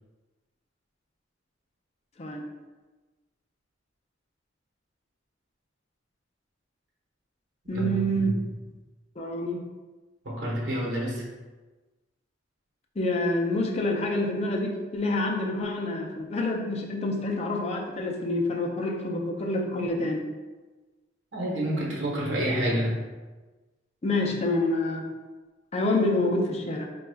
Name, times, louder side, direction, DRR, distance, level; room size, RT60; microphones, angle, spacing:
voice 1, 7.7-8.3 9.2-9.6 13.0-20.3 24.0-25.1 25.7-26.9, left 1 dB, 35° left, 1 dB, 0.5 m, -27 dB
voice 2, 10.2-11.3 21.3-23.1, equal, 75° right, -5 dB, 1.0 m, -28 dB
4.2 x 2.3 x 3.3 m, 1.2 s
head